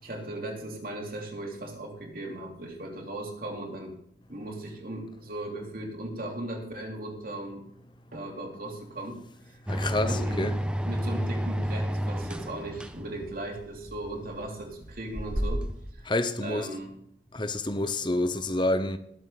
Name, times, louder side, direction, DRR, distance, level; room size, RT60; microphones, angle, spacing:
voice 1, 0.0-4.0 4.3-7.7 8.1-9.6 10.0-10.6 10.8-15.7 15.9-16.1 16.4-17.0, right 1 dB, 50° right, 3.1 m, -37 dB
voice 2, 9.7-10.5 16.0-16.7 17.3-19.0, left 2 dB, 25° left, 0.9 m, -28 dB
sound 1, 9.7-15.9, equal, 5° right, 0.6 m, -31 dB
20.0 x 7.8 x 4.1 m
head